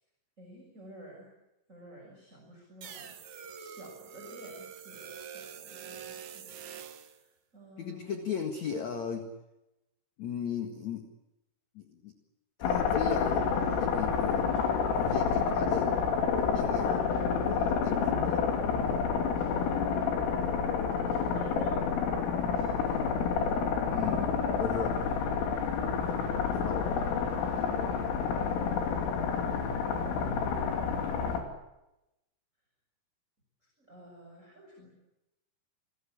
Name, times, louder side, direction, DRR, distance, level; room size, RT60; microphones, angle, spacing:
voice 1, 0.4-1.3 1.7-8.3 16.8-17.1 19.5-20.0 20.4-21.8 27.5-28.7 29.8-31.0 33.6-34.9, right 1 dB, 15° right, 0 dB, 6.1 m, -50 dB
sound 1, 2.8-7.2, right 7 dB, 65° right, 1.9 m, -45 dB
voice 2, 7.8-9.3 10.2-11.1 11.7-12.1 12.6-14.5 14.9-16.0 16.4-18.4 23.8-25.0 26.4-27.0 27.4-27.7, left 7 dB, 55° left, 5 dB, 2.1 m, -37 dB
sound 2, 12.6-31.4, left 6 dB, 75° left, 5.6 m, -29 dB
29.0 x 21.0 x 8.6 m, 0.93 s
omnidirectional pair, 5.8 m